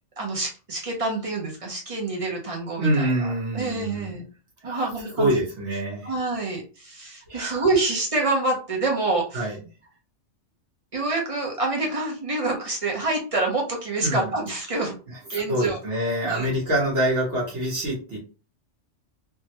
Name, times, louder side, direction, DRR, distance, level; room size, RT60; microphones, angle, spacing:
voice 1, 0.2-4.2 4.6-5.3 6.0-9.4 10.9-15.0 15.3-15.8 16.2-16.5, right 2 dB, 35° right, -1 dB, 0.7 m, -27 dB
voice 2, 2.8-4.2 4.6-6.1 7.3-7.7 9.3-9.6 14.0-14.3 15.1-18.2, right 1 dB, 70° right, -4 dB, 1.4 m, -26 dB
3.3 x 2.1 x 2.9 m, 0.35 s
omnidirectional pair, 1.2 m